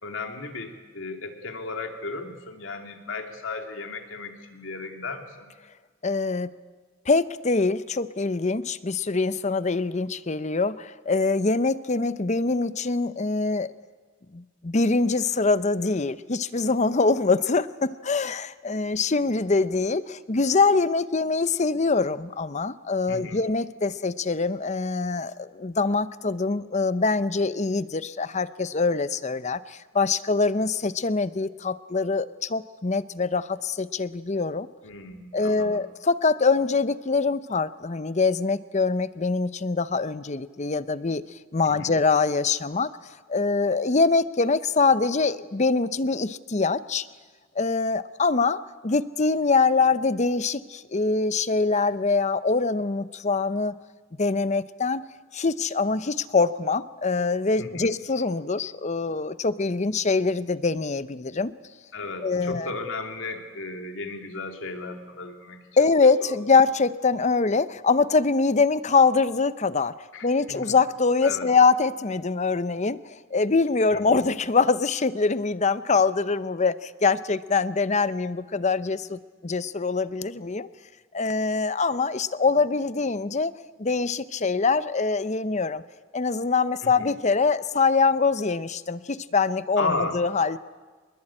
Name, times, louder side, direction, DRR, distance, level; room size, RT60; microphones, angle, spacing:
voice 1, 0.0-5.5 23.1-23.4 34.8-35.8 41.6-41.9 57.6-57.9 61.9-65.6 66.3-66.4 70.1-70.7 71.2-71.5 73.9-74.2 86.8-87.1 89.8-90.2, left 3 dB, 80° left, 4 dB, 2.9 m, -34 dB
voice 2, 6.0-6.5 7.1-13.7 14.3-34.7 35.3-41.2 41.5-42.9 43.3-47.1 47.6-53.7 54.2-55.0 55.3-61.5 62.2-62.7 65.8-73.0 73.3-80.7 81.1-83.5 83.8-85.8 86.1-90.6, left 4 dB, 35° left, 15 dB, 0.7 m, -24 dB
25.0 x 21.5 x 8.9 m, 1.4 s
head